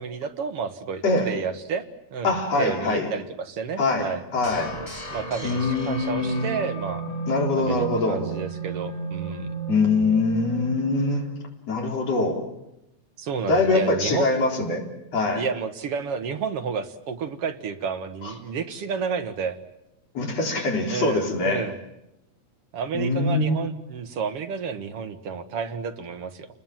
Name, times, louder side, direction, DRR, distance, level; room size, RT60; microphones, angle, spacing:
voice 1, 0.0-1.9 2.1-4.2 5.1-7.0 7.6-9.5 13.2-14.3 15.3-19.6 20.9-21.7 22.7-26.5, right 6 dB, 55° right, 7 dB, 2.1 m, -31 dB
voice 2, 2.2-3.1 3.8-4.8 5.4-6.5 7.3-8.2 9.7-11.3 11.7-12.4 13.5-14.8 15.1-15.4 20.1-21.7 22.9-23.6, left 3 dB, 55° left, 1 dB, 4.9 m, -23 dB
sound 1, 4.4-11.4, right 3 dB, 15° left, 4.8 m, -34 dB
29.0 x 20.5 x 7.4 m, 0.88 s
omnidirectional pair, 3.4 m